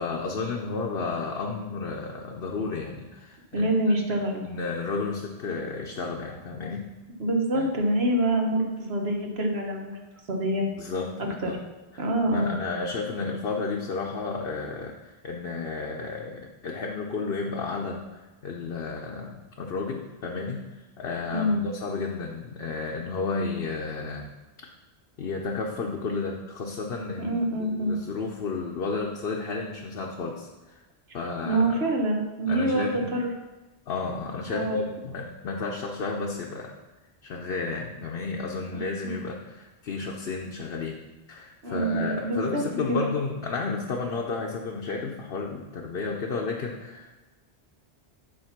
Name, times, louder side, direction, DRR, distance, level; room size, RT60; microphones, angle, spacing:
voice 1, 0.0-3.7 4.1-6.8 7.5-7.7 10.8-11.6 11.9-24.3 24.6-24.7 25.2-30.8 31.1-31.8 32.5-33.1 33.9-36.7 37.2-41.0 41.3-47.2, left 4 dB, 65° left, 0 dB, 1.0 m, -32 dB
voice 2, 3.5-4.4 7.2-10.0 10.3-10.6 11.4-11.6 12.0-12.5 21.3-21.6 27.2-28.0 31.5-33.3 34.5-34.8 38.7-39.2 41.6-42.6 42.9-43.0, right 1 dB, 70° right, 1 dB, 1.5 m, -26 dB
9.0 x 4.4 x 5.9 m, 1.1 s
omnidirectional pair, 1.1 m